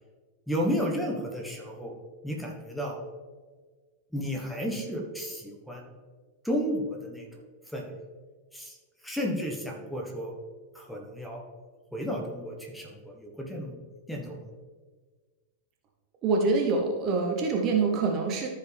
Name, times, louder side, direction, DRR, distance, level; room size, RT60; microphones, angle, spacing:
voice 1, 0.5-1.9 2.2-3.0 4.1-5.8 6.4-7.3 7.7-7.9 8.5-8.8 9.0-10.3 10.7-11.4 11.9-13.8 14.1-14.4, equal, ahead, 0 dB, 1.4 m, -32 dB
voice 2, 16.2-18.5, right 4 dB, 35° right, 2 dB, 1.1 m, -25 dB
13.5 x 4.8 x 3.5 m, 1.5 s
figure-of-eight pair, 90°, 0 cm